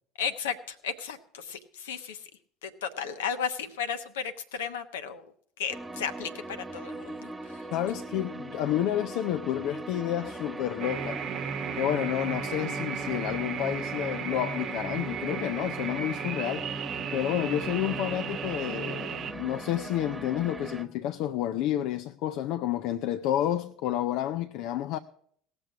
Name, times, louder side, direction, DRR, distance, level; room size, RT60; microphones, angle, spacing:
voice 1, 0.2-2.3 2.6-5.3 5.6-7.7, left 7 dB, 80° left, 1.0 m, -34 dB
sound 1, 5.7-20.8, right 2 dB, 15° right, 1.3 m, -40 dB
voice 2, 7.7-11.2 11.7-16.7 17.1-25.0, left 12 dB, 60° left, 0.5 m, -30 dB
sound 2, 10.8-19.3, right 7 dB, 50° right, 0.9 m, -35 dB
17.5 x 6.8 x 6.0 m
hypercardioid pair, 70°, 0 cm